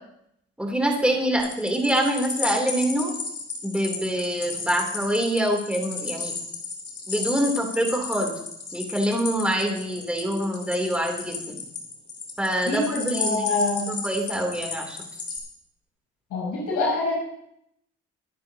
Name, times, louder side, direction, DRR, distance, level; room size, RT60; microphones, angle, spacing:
voice 1, 0.6-3.1 3.6-6.3 7.1-8.3 8.7-11.6 12.4-13.4 13.9-15.0, right 1 dB, 5° right, 1 dB, 3.3 m, -25 dB
sound 1, 1.4-15.4, left 4 dB, 45° left, 3.6 m, -34 dB
voice 2, 12.6-13.9 16.3-17.1, left 2 dB, 85° left, -6 dB, 6.6 m, -25 dB
23.0 x 10.5 x 2.9 m, 0.74 s
cardioid pair, 90°, 30 cm